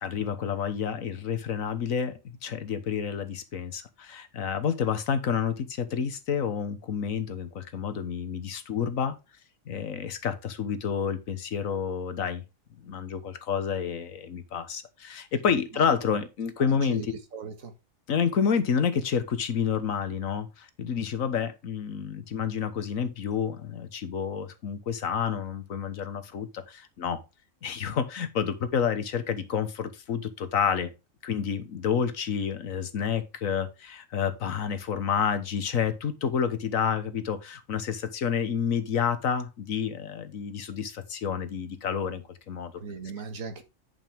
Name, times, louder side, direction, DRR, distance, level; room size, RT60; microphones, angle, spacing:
voice 1, 0.0-9.1 9.7-12.4 12.8-17.0 18.1-27.2 27.6-30.9 31.2-42.7, left 7 dB, 80° left, 1.6 m, -29 dB
voice 2, 16.6-17.1 17.3-17.7 42.7-43.6, right 5 dB, 85° right, 1.8 m, -38 dB
10.0 x 5.5 x 3.5 m
omnidirectional pair, 1.4 m